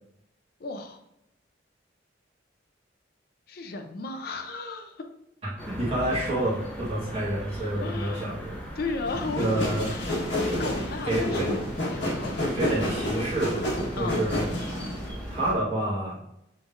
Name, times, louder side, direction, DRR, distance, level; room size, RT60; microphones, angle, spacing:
voice 1, 0.6-1.0 3.5-5.0 7.8-8.4 8.8-11.6 11.9-12.5 14.0-14.2, left 3 dB, 55° left, 6 dB, 0.5 m, -35 dB
sound 1, 5.6-15.5, equal, 10° left, 0.8 m, -39 dB
voice 2, 5.7-8.6 9.3-9.9 10.5-10.6 11.0-11.5 12.4-13.6 13.9-14.5 15.3-16.2, right 1 dB, 30° right, -9 dB, 1.3 m, -28 dB
sound 2, 9.1-15.1, left 1 dB, 75° left, 1.3 m, -30 dB
6.1 x 3.3 x 2.5 m, 0.81 s
head